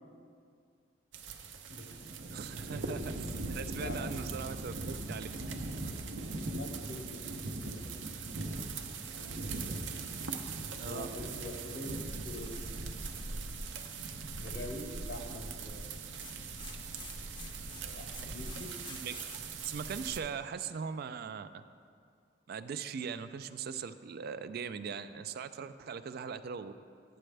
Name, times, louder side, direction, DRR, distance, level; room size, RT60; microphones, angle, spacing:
sound 1, 1.1-20.2, right 3 dB, 85° right, 0.7 m, -40 dB
voice 1, 2.3-5.3 10.8-11.1 19.0-21.6 22.5-26.7, right 6 dB, 55° right, 11 dB, 0.3 m, -40 dB
voice 2, 3.8-4.2 6.3-8.4 9.1-9.5 10.8-12.0 12.2-12.8 14.4-16.0 17.8-18.7, left 1 dB, 70° left, 2 dB, 1.3 m, -45 dB
sound 2, 12.3-14.1 16.2-19.5, left 4 dB, 25° left, 0.6 m, -52 dB
11.5 x 8.8 x 3.3 m, 2.3 s
head